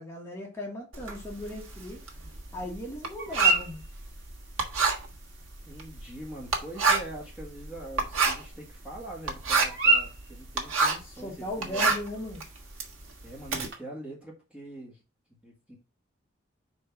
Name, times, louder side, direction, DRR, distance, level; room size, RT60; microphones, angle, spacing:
voice 1, 0.0-2.0 2.5-3.8 11.2-12.5, left 1 dB, 15° left, 1.8 m, -37 dB
Writing, 0.9-11.1 11.5-13.7, right 4 dB, 85° right, 1.6 m, -29 dB
sound 1, 1.2-13.8, right 3 dB, 55° right, 1.9 m, -34 dB
voice 2, 5.7-11.9 13.2-15.0 15.4-15.8, right 1 dB, 5° right, 1.6 m, -43 dB
4.8 x 4.4 x 5.8 m
head